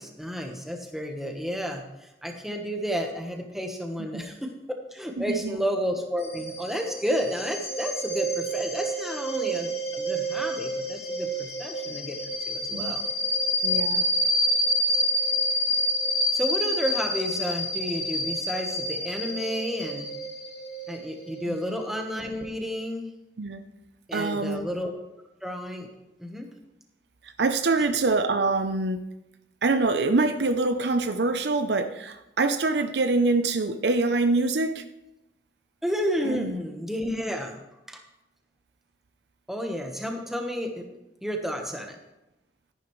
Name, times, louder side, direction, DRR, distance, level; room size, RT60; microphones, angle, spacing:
voice 1, 0.0-4.5 4.9-13.0 16.3-20.1 20.9-23.1 24.1-24.9 25.4-25.9 26.2-26.5 35.8-37.6 37.9-38.0 39.5-40.9 41.2-42.0, equal, ahead, 2 dB, 1.2 m, -31 dB
voice 2, 5.2-5.6 12.7-13.0 13.6-14.1 21.5-21.6 23.4-23.6 24.1-24.6 27.2-29.0 29.6-34.8 36.2-36.5, right 3 dB, 65° right, 9 dB, 0.7 m, -25 dB
sound 1, 6.2-22.5, equal, 35° left, 1.7 m, -28 dB
13.0 x 11.0 x 3.2 m, 0.93 s
head